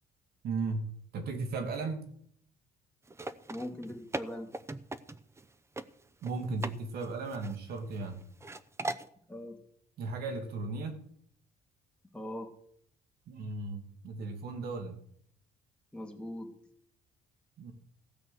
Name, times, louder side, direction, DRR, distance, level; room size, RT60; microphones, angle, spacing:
voice 1, 0.4-0.9 1.1-2.1 6.2-8.2 10.0-11.0 13.3-15.0 17.6-17.7, right 3 dB, 65° right, 6 dB, 2.1 m, -36 dB
sound 1, 3.1-5.5 5.8-5.9 6.2-6.8 7.0-8.1 8.4-9.1, right 2 dB, 15° right, 0.7 m, -39 dB
voice 2, 3.5-4.5 9.3-9.6 12.1-12.5 15.9-16.5, left 1 dB, 5° left, 1 dB, 2.8 m, -40 dB
15.5 x 6.1 x 8.0 m, 0.67 s
cardioid pair, 110°, 17 cm